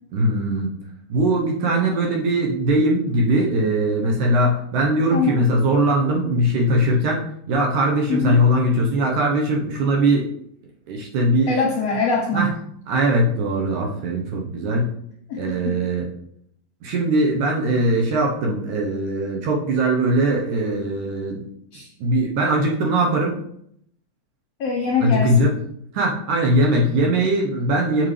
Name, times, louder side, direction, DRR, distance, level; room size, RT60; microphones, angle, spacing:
voice 1, 0.1-0.8 1.1-10.3 10.9-11.5 12.3-12.5 12.9-14.9 15.4-16.1 16.8-21.5 22.0-23.4 25.0-25.5 25.9-28.1, right 1 dB, 65° right, -1 dB, 2.2 m, -20 dB
voice 2, 8.1-8.4 11.5-12.5 15.3-15.8 21.7-21.9 24.6-25.5, left 4 dB, 70° left, -2 dB, 1.6 m, -23 dB
7.3 x 6.6 x 3.3 m, 0.70 s
omnidirectional pair, 4.2 m